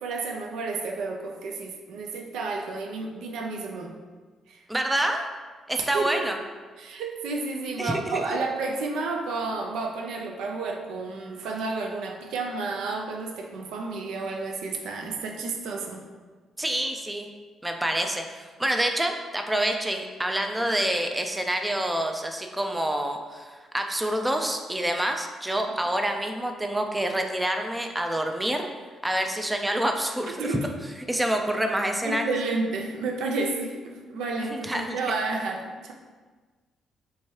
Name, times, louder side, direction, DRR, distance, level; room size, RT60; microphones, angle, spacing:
voice 1, 0.0-3.9 4.5-4.6 5.9-6.3 6.8-16.0 30.4-30.7 32.0-35.9, right 3 dB, 85° right, 1 dB, 0.4 m, -31 dB
voice 2, 4.7-5.2 5.7-6.4 7.8-8.4 16.6-17.3 17.6-28.7 29.0-30.5 31.1-32.3 34.5-35.0, right 1 dB, 10° right, 4 dB, 0.3 m, -27 dB
3.5 x 3.0 x 2.8 m, 1.4 s
cardioid pair, 90°, 0 cm